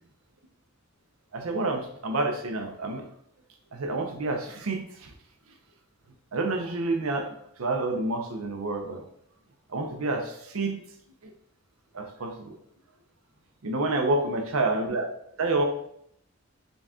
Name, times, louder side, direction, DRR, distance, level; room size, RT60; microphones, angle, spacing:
voice 1, 1.3-3.1 3.7-5.1 6.3-7.3 7.6-9.0 9.7-10.7 11.9-12.6 13.6-15.1 15.4-15.6, right 2 dB, 85° right, 4 dB, 0.7 m, -28 dB
4.0 x 2.4 x 3.5 m, 0.71 s
head